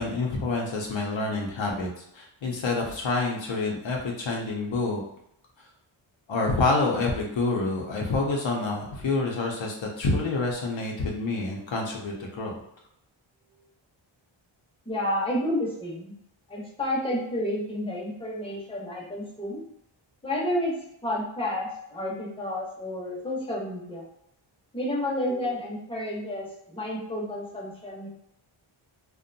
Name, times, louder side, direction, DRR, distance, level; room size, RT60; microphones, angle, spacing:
voice 1, 0.0-1.9 2.1-5.0 6.3-12.5, left 3 dB, 65° left, -1 dB, 0.6 m, -27 dB
voice 2, 14.9-16.1 16.5-19.6 20.2-20.7 21.0-24.0 24.7-28.1, left 1 dB, 10° left, -4 dB, 0.7 m, -30 dB
2.6 x 2.2 x 2.5 m, 0.75 s
wide cardioid pair, 100°, 49 cm